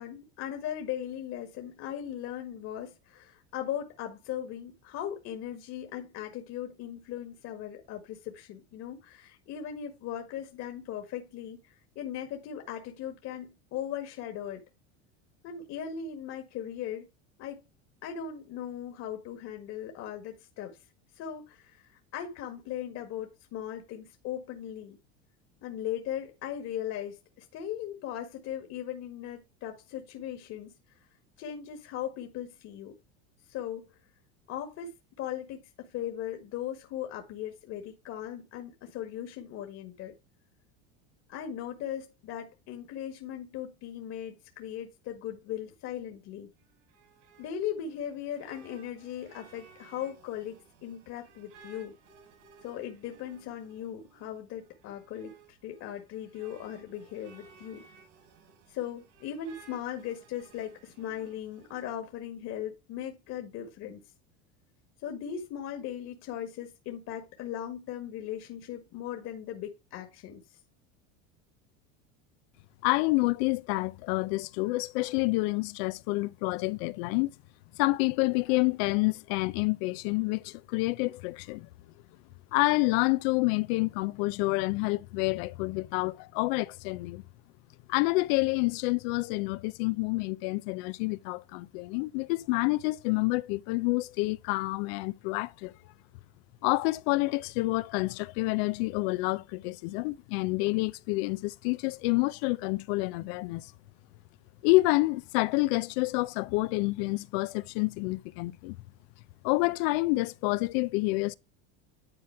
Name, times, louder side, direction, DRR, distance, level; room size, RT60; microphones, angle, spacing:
voice 1, 0.0-14.6 15.4-17.1 17.4-17.6 18.0-20.8 21.1-25.0 25.6-30.7 31.4-33.0 33.5-33.9 34.5-34.9 35.2-40.1 41.3-46.5 47.4-51.9 52.6-55.3 55.6-57.8 58.7-64.0 65.0-70.6, left 10 dB, 50° left, 1.9 m, -38 dB
sound 1, 46.6-61.9, right 5 dB, 85° right, 5.0 m, -58 dB
voice 2, 72.8-77.3 77.8-81.7 82.5-87.2 87.9-95.7 96.6-103.7 104.6-108.8 109.4-111.3, left 23 dB, 65° left, 0.7 m, -28 dB
11.0 x 4.3 x 4.7 m
supercardioid pair, 130°, 33 cm